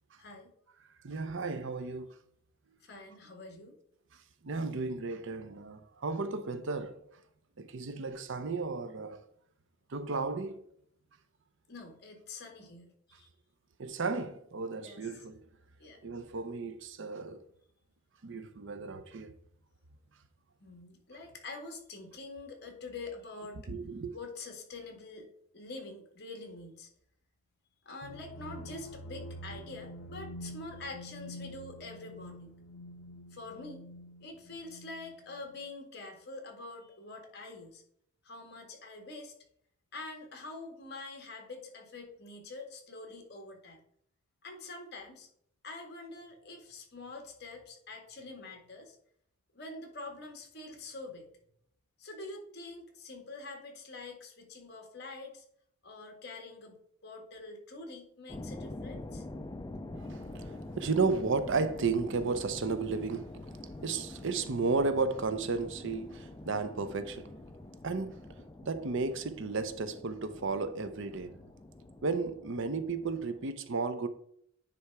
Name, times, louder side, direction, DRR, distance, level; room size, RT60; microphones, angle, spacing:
voice 1, 0.2-0.5 2.8-3.7 11.7-13.3 14.8-15.1 15.8-16.0 20.6-23.7 24.1-25.3 25.5-26.9 27.9-32.5 33.3-33.9 34.2-37.8 38.2-39.3 39.9-43.8 44.4-45.3 45.6-49.0 49.5-51.3 52.0-55.4 55.8-56.8 57.0-59.3, left 3 dB, 50° left, 1.8 m, -45 dB
voice 2, 1.0-2.2 4.4-7.0 7.6-9.2 9.9-10.6 13.8-15.4 16.0-17.4 18.2-19.3 23.7-24.1 59.9-63.5 63.8-67.3 67.8-71.4 72.0-74.1, right 4 dB, 60° right, 0.6 m, -33 dB
sound 1, 28.0-35.7, equal, 80° left, 0.6 m, -47 dB
sound 2, 58.3-73.5, left 2 dB, 20° left, 0.4 m, -46 dB
9.7 x 3.4 x 4.7 m
head